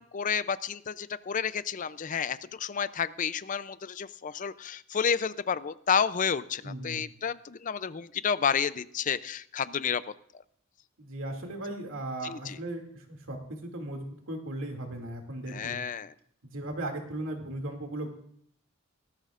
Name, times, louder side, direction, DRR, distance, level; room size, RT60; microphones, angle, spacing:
voice 1, 0.0-10.0 12.2-12.6 15.5-16.1, left 7 dB, 40° left, 15 dB, 0.5 m, -30 dB
voice 2, 6.6-7.0 11.0-15.8 16.4-18.1, right 1 dB, 90° right, 2 dB, 2.5 m, -37 dB
18.5 x 13.5 x 2.5 m, 0.65 s
head